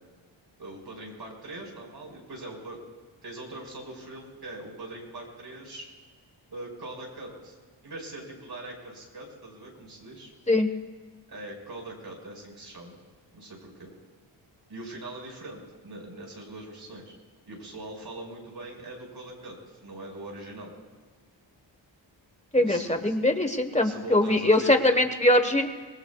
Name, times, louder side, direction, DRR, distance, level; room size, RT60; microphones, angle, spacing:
voice 1, 0.6-2.8 3.2-5.9 6.5-7.6 7.8-10.3 11.3-13.0 13.3-13.9 14.7-17.1 17.5-20.7 22.5-23.1 23.8-25.0, right 2 dB, 50° right, 0 dB, 5.2 m, -41 dB
voice 2, 22.5-25.7, left 1 dB, 15° left, 6 dB, 1.2 m, -22 dB
25.0 x 20.5 x 2.4 m, 1.5 s
wide cardioid pair, 150°, 48 cm